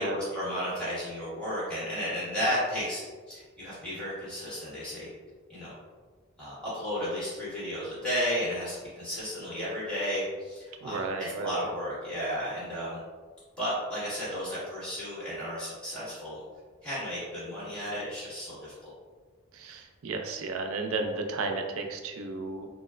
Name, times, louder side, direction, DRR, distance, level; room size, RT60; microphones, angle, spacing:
voice 1, 0.0-5.1 5.5-5.7 6.4-13.0 13.6-16.4 16.8-18.9, equal, 5° left, -12 dB, 1.5 m, -33 dB
voice 2, 10.8-11.6 19.5-22.7, right 3 dB, 80° right, 4 dB, 0.4 m, -33 dB
4.1 x 2.0 x 2.4 m, 1.5 s
head